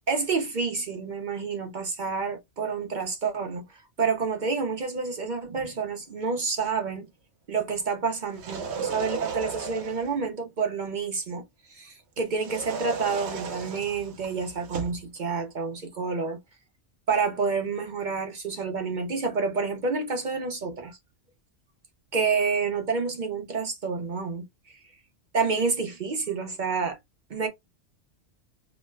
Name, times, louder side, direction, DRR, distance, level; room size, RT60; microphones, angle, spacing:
voice 1, 0.1-3.6 4.0-7.1 7.5-11.4 11.7-16.4 17.1-21.0 22.1-24.4 25.3-27.0 27.3-27.5, right 5 dB, 50° right, 0.7 m, -28 dB
sound 1, 8.3-10.2 12.4-15.0, right 6 dB, 70° right, 1.0 m, -35 dB
3.0 x 2.1 x 3.2 m
omnidirectional pair, 1.2 m